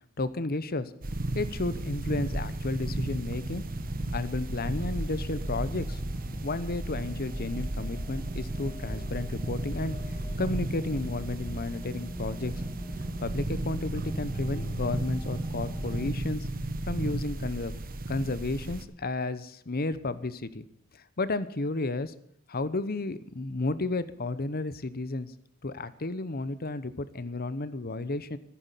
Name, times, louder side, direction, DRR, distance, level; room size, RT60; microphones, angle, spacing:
voice 1, 0.2-0.9 1.3-3.6 4.1-6.0 6.4-10.0 10.4-12.5 13.2-16.5 16.9-17.8 18.1-20.6 20.9-22.1 22.5-25.3 25.6-28.4, left 2 dB, 45° left, 15 dB, 0.9 m, -32 dB
sound 1, 1.0-18.8, right 1 dB, 40° right, 1.2 m, -34 dB
sound 2, 3.3-16.1, equal, 10° left, 2.0 m, -43 dB
14.5 x 9.7 x 8.2 m, 0.67 s
head